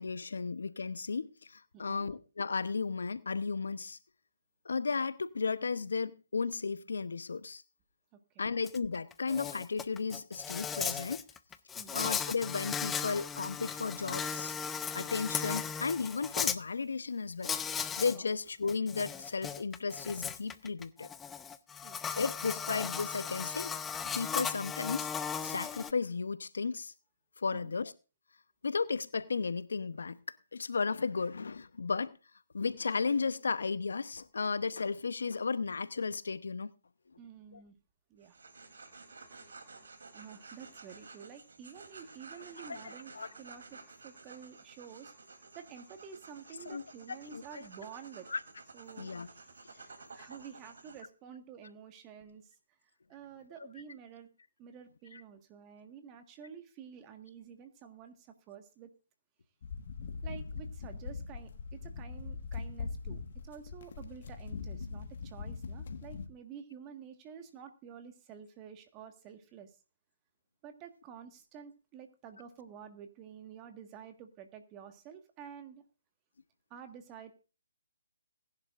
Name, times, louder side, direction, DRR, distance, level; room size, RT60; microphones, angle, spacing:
voice 1, 0.0-4.0 4.6-7.6 8.4-11.2 11.9-14.5 14.9-17.5 18.0-21.1 22.2-23.7 24.1-25.1 25.4-26.9 27.4-27.9 28.6-32.2 32.5-36.7 37.5-37.6 42.7-43.3 46.7-47.6 48.3-48.4 49.0-49.3 55.1-55.2, left 4 dB, 75° left, 0.8 m, -34 dB
voice 2, 1.7-2.1 8.3-8.6 11.7-12.0 18.1-18.3 21.8-22.2 27.5-27.8 37.2-37.8 38.1-38.4 40.1-43.1 43.4-45.1 45.5-48.3 48.7-49.1 49.7-52.5 53.1-54.3 54.6-58.9 60.2-69.7 70.6-75.8 76.7-77.3, right 7 dB, 25° right, 1.6 m, -50 dB
Insect, 8.7-8.8 9.1-16.6 17.4-18.2 18.5-25.9, left 7 dB, 10° left, 0.5 m, -37 dB
sound 1, 38.2-51.0, right 4 dB, 75° right, 3.3 m, -53 dB
sound 2, 59.6-66.3, left 5 dB, 55° left, 1.6 m, -41 dB
20.0 x 11.0 x 2.5 m
figure-of-eight pair, 145°, 0 cm